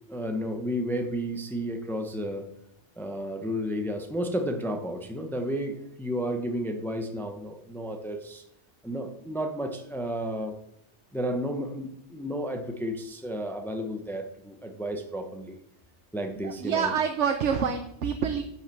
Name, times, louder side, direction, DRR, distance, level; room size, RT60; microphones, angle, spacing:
voice 1, 0.1-2.5 3.0-8.4 8.8-10.6 11.1-15.6 16.1-16.9, equal, ahead, 4 dB, 0.9 m, -32 dB
voice 2, 16.4-18.4, right 7 dB, 80° right, 6 dB, 1.1 m, -27 dB
8.6 x 5.7 x 6.9 m, 0.77 s
omnidirectional pair, 1.2 m